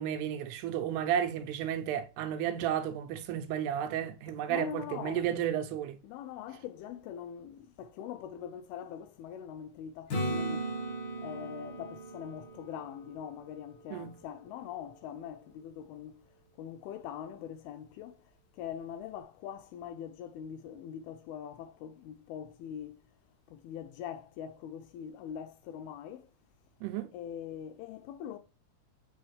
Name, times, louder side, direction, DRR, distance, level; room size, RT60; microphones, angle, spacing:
voice 1, 0.0-6.0 13.9-14.1 26.8-27.1, right 10 dB, 80° right, 2.7 m, -32 dB
voice 2, 4.5-5.3 6.0-10.7 11.2-16.3 16.6-23.0 23.5-26.3 27.1-28.4, left 9 dB, 85° left, 2.3 m, -43 dB
Acoustic guitar / Strum, 10.1-13.9 18.7-18.8, right 1 dB, 65° left, 1.1 m, -37 dB
7.4 x 5.4 x 3.2 m
omnidirectional pair, 4.7 m